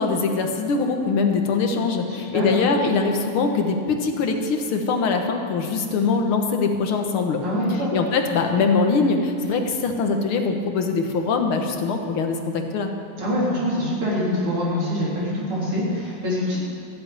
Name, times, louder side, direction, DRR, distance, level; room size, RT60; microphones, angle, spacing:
voice 1, 0.0-7.4 7.7-12.9, left 4 dB, 85° left, 4 dB, 2.1 m, -22 dB
voice 2, 2.1-2.5 7.4-7.9 13.2-16.6, left 1 dB, 85° right, -7 dB, 4.7 m, -24 dB
14.5 x 8.0 x 9.4 m, 2.4 s
omnidirectional pair, 2.3 m